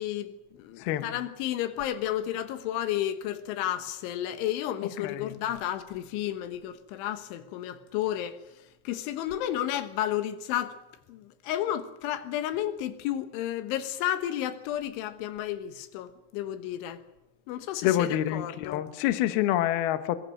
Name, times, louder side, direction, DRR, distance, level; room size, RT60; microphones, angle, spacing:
voice 1, 0.0-8.4 8.9-10.8 11.1-17.0 17.5-18.9, left 12 dB, 85° left, 3.7 m, -32 dB
voice 2, 5.0-5.3 17.8-20.2, left 12 dB, 70° left, 2.6 m, -27 dB
24.5 x 21.0 x 6.6 m
omnidirectional pair, 5.3 m